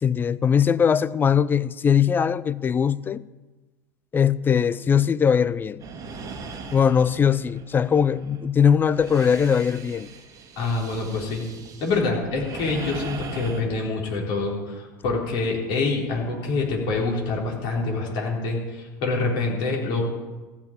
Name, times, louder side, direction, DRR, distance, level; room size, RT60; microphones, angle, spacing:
voice 1, 0.0-3.2 4.1-5.8 6.7-10.1, left 7 dB, 20° left, 0.5 m, -20 dB
sound 1, 5.8-13.6, right 4 dB, 35° right, 1.6 m, -40 dB
voice 2, 10.6-11.5 11.8-20.0, left 3 dB, 50° left, 4.1 m, -26 dB
14.5 x 7.1 x 9.1 m
figure-of-eight pair, 75°, 10 cm